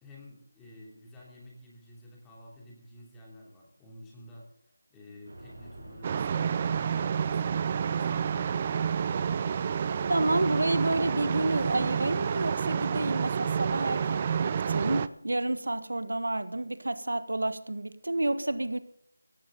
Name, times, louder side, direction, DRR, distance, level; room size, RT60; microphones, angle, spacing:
voice 1, 0.0-4.5 4.9-9.1, left 1 dB, 5° left, 2.9 m, -51 dB
sound 1, 5.2-12.5, right 1 dB, 40° right, 6.3 m, -47 dB
sound 2, 6.0-15.1, right 7 dB, 20° right, 0.5 m, -29 dB
voice 2, 10.1-18.8, right 1 dB, 85° right, 1.5 m, -30 dB
17.5 x 15.5 x 3.8 m
figure-of-eight pair, 175°, 0 cm